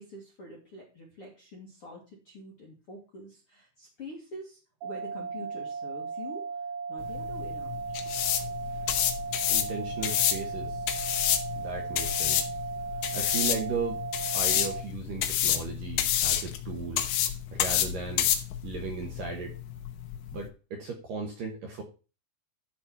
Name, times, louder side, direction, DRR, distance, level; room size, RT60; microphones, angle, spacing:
voice 1, 0.0-6.4 6.9-8.0, left 1 dB, 60° left, -2 dB, 1.4 m, -46 dB
sound 1, 4.8-14.8, right 5 dB, 85° right, 3.5 m, -36 dB
sound 2, 7.0-20.5, left 11 dB, 85° left, 3.4 m, -29 dB
voice 2, 9.5-10.9 11.6-12.6 13.1-14.0 14.3-17.0 17.5-18.3 18.6-19.6 20.3-21.8, right 5 dB, 65° right, 2 dB, 2.3 m, -36 dB
11.5 x 4.4 x 5.8 m, 0.33 s
omnidirectional pair, 5.5 m